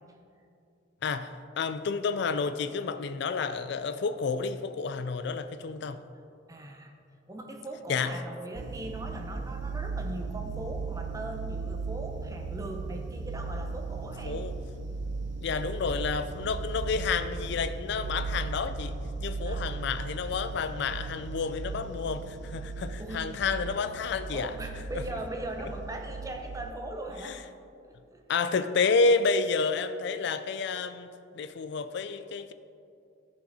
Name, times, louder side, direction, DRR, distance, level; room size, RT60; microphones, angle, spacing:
voice 1, 1.0-6.0 7.9-8.2 14.2-14.5 15.4-18.9 19.2-24.5 27.2-27.4 28.3-31.1 31.3-32.5, left 4 dB, 65° left, 12 dB, 0.4 m, -30 dB
voice 2, 6.5-6.9 7.3-14.4 19.4-19.7 23.0-23.3 24.3-27.4 27.8-28.2, right 1 dB, 20° right, 3 dB, 0.9 m, -40 dB
sound 1, 8.6-26.7, right 4 dB, 70° right, 0.5 m, -37 dB
14.5 x 5.6 x 4.1 m, 2.6 s
head